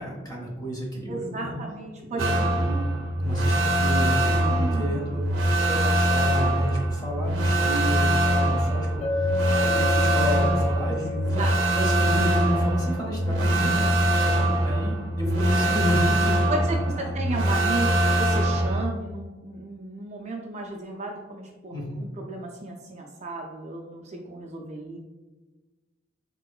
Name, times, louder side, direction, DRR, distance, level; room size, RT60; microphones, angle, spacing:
voice 1, 0.0-1.5 2.1-2.9 3.2-5.2 5.6-11.5 11.7-17.1 21.7-22.1, equal, 20° left, -2 dB, 0.9 m, -31 dB
voice 2, 1.1-2.2 4.5-5.7 10.9-11.1 11.4-11.5 16.5-25.0, right 2 dB, 35° right, 0 dB, 0.4 m, -34 dB
sound 1, 2.2-18.8, right 1 dB, 90° right, 0.5 m, -23 dB
Chink clink, 9.0-13.0, left 3 dB, 40° left, 1.1 m, -31 dB
3.6 x 3.0 x 2.3 m, 1.2 s
head